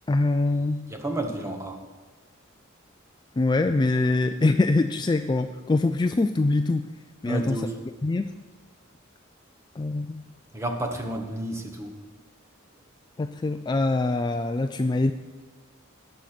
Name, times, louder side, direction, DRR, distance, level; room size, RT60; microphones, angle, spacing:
voice 1, 0.1-0.9 3.4-6.9 7.2-7.6 8.0-8.3 9.8-10.2 13.2-15.1, left 2 dB, 20° left, 8 dB, 0.3 m, -24 dB
voice 2, 0.9-1.8 7.2-7.8 10.5-11.9, right 1 dB, 15° right, 4 dB, 1.2 m, -31 dB
17.5 x 6.5 x 5.9 m, 1.3 s
head